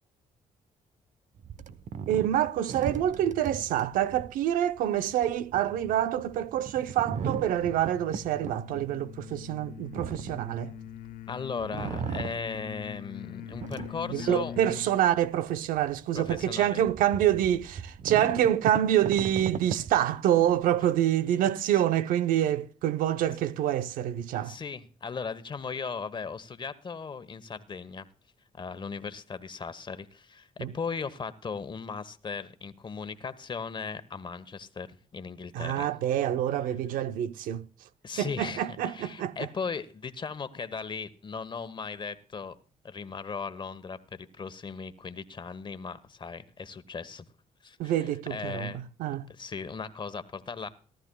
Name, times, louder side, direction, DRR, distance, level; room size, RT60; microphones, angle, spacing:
sound 1, 1.4-11.2 11.6-13.0 13.4-14.8 15.2-15.3 15.8-20.9, right 6 dB, 60° right, 1.0 m, -38 dB
voice 1, 2.1-10.7 14.1-24.5 30.6-30.7 35.5-37.6 38.2-39.3 47.8-49.3, right 11 dB, 90° right, 0.7 m, -26 dB
sound 2, 7.6-15.0, left 10 dB, 75° left, 0.8 m, -43 dB
voice 2, 11.3-14.8 16.1-16.8 21.7-21.8 24.4-28.1 28.5-35.9 38.0-42.6 42.8-47.3 47.6-48.8 49.3-50.7, left 5 dB, 35° left, 1.2 m, -37 dB
18.0 x 13.0 x 2.3 m
cardioid pair, 95°, 14 cm